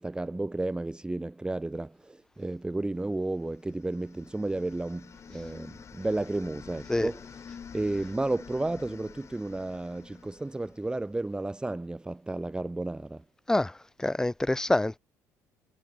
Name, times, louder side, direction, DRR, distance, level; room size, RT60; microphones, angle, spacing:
voice 1, 0.0-7.4 7.7-13.2, right 2 dB, 10° right, 1.1 m, -32 dB
sound 1, 3.3-11.3, left 6 dB, 35° left, 5.3 m, -49 dB
voice 2, 14.0-15.0, left 2 dB, 5° left, 0.4 m, -26 dB
figure-of-eight pair, 55°, 8 cm